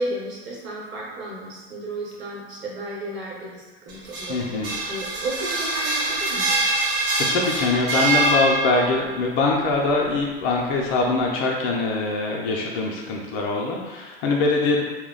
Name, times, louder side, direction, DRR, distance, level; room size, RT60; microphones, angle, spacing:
voice 1, 0.0-6.5, right 1 dB, 35° right, -5 dB, 1.0 m, -33 dB
sound 1, 3.9-9.1, right 2 dB, 55° right, 0.8 m, -24 dB
voice 2, 4.3-4.7 7.3-14.8, left 3 dB, 40° left, -1 dB, 0.4 m, -23 dB
2.2 x 2.0 x 3.7 m, 1.3 s
hypercardioid pair, 105°, 31 cm